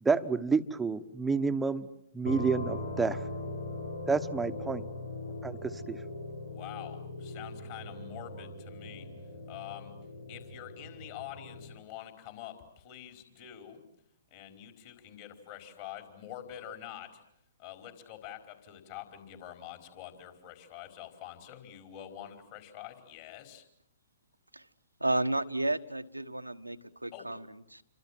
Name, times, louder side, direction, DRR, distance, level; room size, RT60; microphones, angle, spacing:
voice 1, 0.0-1.9 2.1-3.2 4.1-4.8 5.4-6.0, right 4 dB, 5° right, 9 dB, 1.2 m, -29 dB
sound 1, 2.3-11.8, left 2 dB, 85° left, 4.0 m, -40 dB
voice 2, 6.4-9.1 9.5-10.0 10.3-13.8 14.3-17.2 17.6-23.6 27.1-27.3, left 11 dB, 40° left, 6 dB, 4.8 m, -46 dB
voice 3, 25.0-27.8, right 2 dB, 90° right, 9 dB, 1.3 m, -32 dB
28.5 x 25.5 x 7.7 m, 0.72 s
figure-of-eight pair, 120°, 0 cm